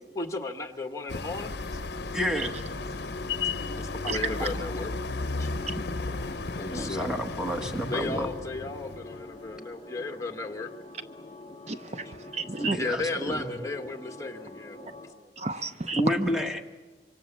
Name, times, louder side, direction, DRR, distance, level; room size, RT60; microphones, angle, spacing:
voice 1, 0.1-1.8 2.9-3.0 3.8-4.9 5.4-5.5 6.2-7.1 7.9-10.7 12.7-14.8 15.0-15.1, left 3 dB, 15° left, 5 dB, 1.4 m, -35 dB
sound 1, 1.1-9.4, left 3 dB, 60° left, 0.8 m, -35 dB
sound 2, 1.3-15.1, left 2 dB, 30° left, 3.1 m, -44 dB
voice 2, 2.1-2.5 4.4-4.5 5.3-5.4 6.7-8.3 12.6-13.7 14.2-14.3 14.8-14.9 15.9-16.6, equal, 5° right, 5 dB, 1.6 m, -30 dB
voice 3, 11.7-12.8 15.4-16.2, right 3 dB, 35° right, 11 dB, 0.7 m, -31 dB
25.5 x 25.0 x 7.4 m, 1.4 s
head